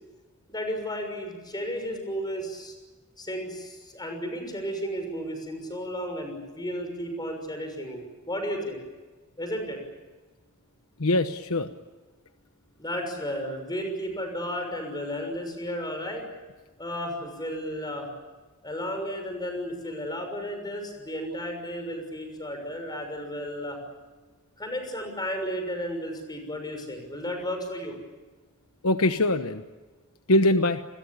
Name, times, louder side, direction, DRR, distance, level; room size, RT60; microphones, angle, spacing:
voice 1, 0.5-2.7 3.2-8.8 9.4-9.8 12.8-16.2 16.8-18.1 18.6-23.8 24.6-28.0, equal, 20° left, 5 dB, 6.3 m, -33 dB
voice 2, 11.0-11.7 28.8-29.6 30.3-30.8, left 1 dB, 70° left, 9 dB, 1.1 m, -22 dB
29.0 x 22.0 x 8.7 m, 1.2 s
head